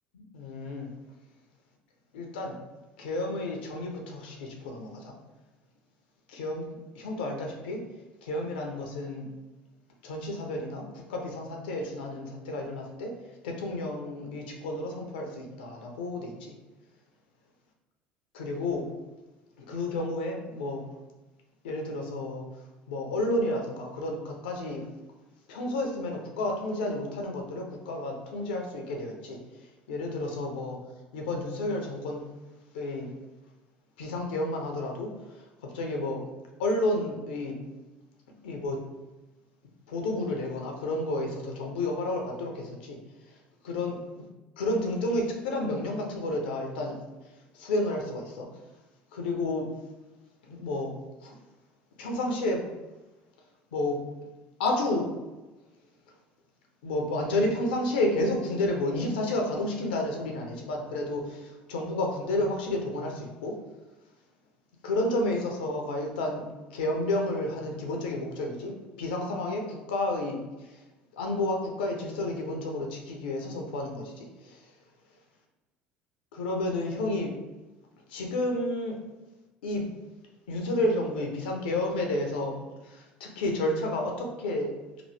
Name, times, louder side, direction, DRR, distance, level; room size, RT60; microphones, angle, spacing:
voice 1, 0.1-0.9 2.1-2.6 3.0-5.1 6.3-6.7 7.0-7.8 8.2-9.3 10.0-13.1 13.4-16.6 18.3-18.9 19.6-20.8 21.6-22.4 22.9-24.8 25.5-29.4 29.9-30.8 31.1-32.2 32.7-33.1 34.0-36.2 36.6-37.6 38.4-38.8 39.9-43.0 43.3-43.4 43.6-44.0 44.6-47.0 47.5-48.5 49.1-49.7 50.5-50.9 51.2-51.3 52.0-52.6 53.7-54.0 54.6-55.1 56.8-63.6 64.8-66.4 66.7-70.8 71.1-74.6 76.3-77.3 78.1-79.0 79.6-79.8 80.5-82.6 82.8-84.7, left 1 dB, 85° left, 2 dB, 0.5 m, -31 dB
2.9 x 2.0 x 3.2 m, 1.1 s
hypercardioid pair, 70°, 5 cm